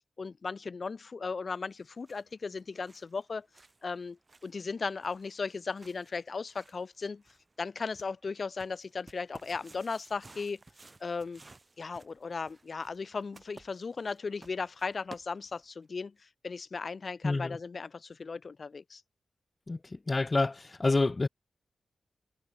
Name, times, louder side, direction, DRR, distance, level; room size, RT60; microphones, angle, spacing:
voice 1, 0.2-3.5 3.8-4.2 4.4-7.2 7.6-10.6 11.0-11.4 11.8-19.0, left 4 dB, 40° left, 1.5 m, -36 dB
sound 1, 1.7-15.8, right 3 dB, 20° right, 6.6 m, -57 dB
voice 2, 17.2-17.6 19.7-19.8 20.1-21.3, left 3 dB, 25° left, 0.5 m, -27 dB
wide cardioid pair, 165°, 0 cm